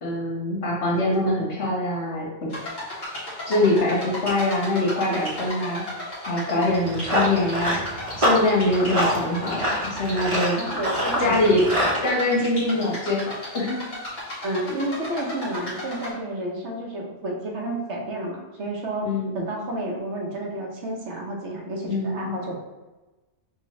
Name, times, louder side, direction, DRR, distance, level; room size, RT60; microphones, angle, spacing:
voice 1, 0.0-2.5 3.5-5.8 6.3-10.6 11.2-13.9 19.0-19.3 21.8-22.4, left 1 dB, 70° left, -4 dB, 1.6 m, -24 dB
sound 1, 2.5-16.1, left 1 dB, 40° left, 1.4 m, -35 dB
Run, 6.7-12.0, equal, 30° right, 0.9 m, -26 dB
voice 2, 10.4-11.6 14.4-19.1 19.3-22.6, right 1 dB, 75° right, -1 dB, 1.2 m, -30 dB
5.4 x 2.4 x 3.1 m, 1.1 s
omnidirectional pair, 1.2 m